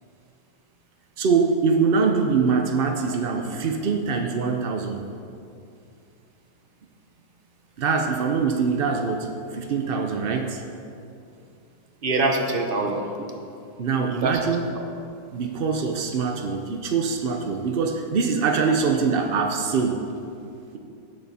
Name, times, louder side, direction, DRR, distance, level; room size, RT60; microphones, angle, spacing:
voice 1, 1.2-5.0 7.8-10.6 13.8-14.6 15.3-20.0, right 5 dB, 70° right, 3 dB, 0.5 m, -23 dB
voice 2, 3.1-3.4 12.0-13.0 14.2-14.4 14.8-14.9, right 2 dB, 35° right, 3 dB, 1.0 m, -25 dB
16.5 x 8.0 x 4.2 m, 2.5 s
omnidirectional pair, 1.9 m